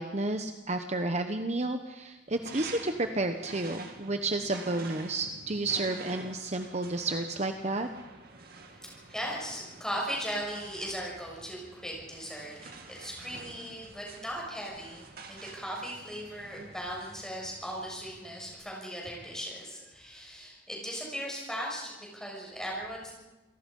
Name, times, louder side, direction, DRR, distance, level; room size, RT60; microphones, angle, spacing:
voice 1, 0.0-7.9, right 2 dB, 35° right, 6 dB, 1.0 m, -31 dB
sound 1, 2.3-18.5, right 3 dB, 55° right, 2.5 m, -48 dB
voice 2, 8.8-12.6 12.9-23.1, equal, 5° left, -2 dB, 6.8 m, -38 dB
28.0 x 18.5 x 5.5 m, 1.0 s
head